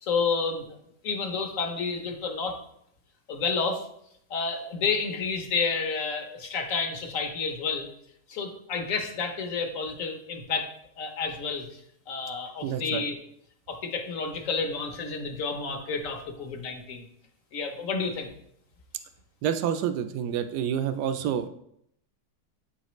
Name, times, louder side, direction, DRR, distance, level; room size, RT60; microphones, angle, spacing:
voice 1, 0.0-0.6 1.0-2.6 3.3-3.8 4.3-7.9 8.3-10.7 11.0-11.7 12.1-13.2 13.7-17.1 17.5-18.3, left 4 dB, 60° left, 4 dB, 1.1 m, -30 dB
voice 2, 12.6-13.0 19.4-21.5, right 9 dB, 85° right, 9 dB, 1.2 m, -28 dB
8.4 x 4.1 x 3.0 m, 0.72 s
omnidirectional pair, 1.7 m